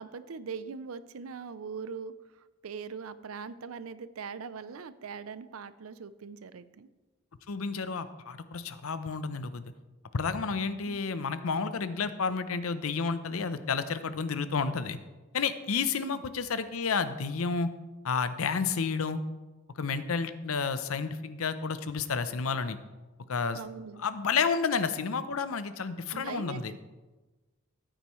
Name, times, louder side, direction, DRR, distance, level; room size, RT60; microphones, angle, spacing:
voice 1, 0.0-6.9 10.8-11.0 15.9-16.2 23.5-24.0 26.1-26.8, right 5 dB, 85° right, 15 dB, 0.5 m, -41 dB
voice 2, 7.5-9.6 10.1-15.0 15.3-17.7 18.0-19.2 19.8-22.8 23.3-23.6 24.0-26.7, left 5 dB, 80° left, 12 dB, 0.6 m, -31 dB
14.0 x 8.9 x 3.1 m, 1.2 s
head